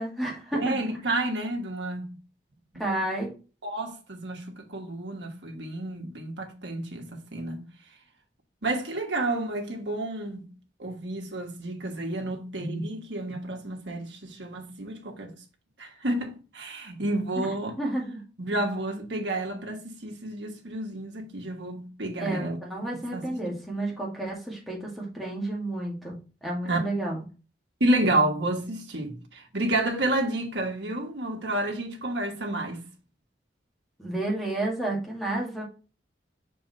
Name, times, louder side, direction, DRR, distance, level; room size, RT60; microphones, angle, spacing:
voice 1, 0.0-0.8 2.8-3.3 17.4-17.5 17.8-18.2 22.2-27.2 34.0-35.6, right 1 dB, ahead, 2.0 m, -31 dB
voice 2, 0.5-2.1 2.7-3.0 3.6-7.6 8.6-10.5 10.8-15.3 15.8-17.7 18.4-22.6 22.9-23.3 26.6-26.8 27.8-32.8, right 1 dB, 75° right, 1.4 m, -30 dB
5.3 x 4.6 x 4.1 m
head